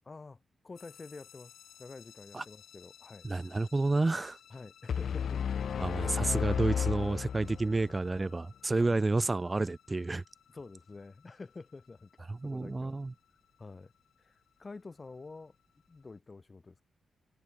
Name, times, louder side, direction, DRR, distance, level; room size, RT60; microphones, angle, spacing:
voice 1, 0.0-1.5 1.8-3.3 4.5-5.6 8.7-9.0 10.5-13.0 13.6-13.9 14.2-15.5 15.9-16.8, left 3 dB, 30° left, 1.5 m, -49 dB
sound 1, 0.8-16.2, left 10 dB, 85° left, 1.7 m, -60 dB
voice 2, 3.2-4.4 5.8-10.2 12.4-13.1, right 2 dB, 25° right, 0.6 m, -30 dB
sound 2, 4.9-7.9, left 7 dB, 65° left, 0.5 m, -32 dB
cardioid pair, 80°, 0 cm